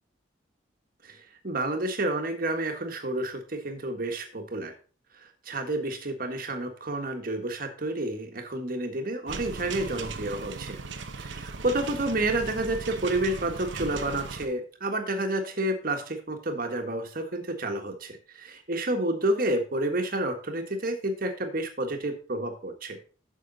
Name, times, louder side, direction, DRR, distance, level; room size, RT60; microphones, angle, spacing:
voice 1, 1.0-4.7 5.2-10.8 11.2-23.0, right 1 dB, 50° right, 5 dB, 1.6 m, -30 dB
sound 1, 9.3-14.5, right 4 dB, 80° right, 0.9 m, -38 dB
9.0 x 6.8 x 4.0 m, 0.38 s
head